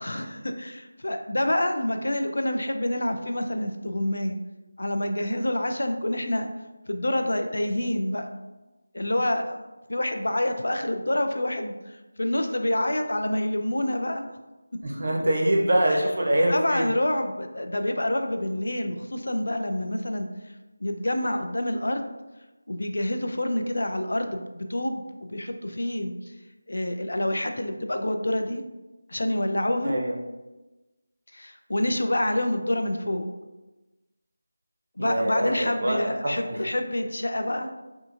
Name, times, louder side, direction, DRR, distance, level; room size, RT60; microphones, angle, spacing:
voice 1, 0.0-4.4 4.8-6.5 6.9-8.3 8.9-9.6 9.9-14.3 15.9-16.0 16.5-20.3 20.8-22.1 22.7-26.1 26.7-28.6 29.1-30.0 31.3-33.3 35.0-37.7, left 1 dB, 75° left, 6 dB, 0.3 m, -27 dB
voice 2, 14.8-16.9 29.8-30.1 35.0-36.6, right 1 dB, 45° right, 0 dB, 0.5 m, -24 dB
2.7 x 2.4 x 2.4 m, 1.1 s
figure-of-eight pair, 180°, 0 cm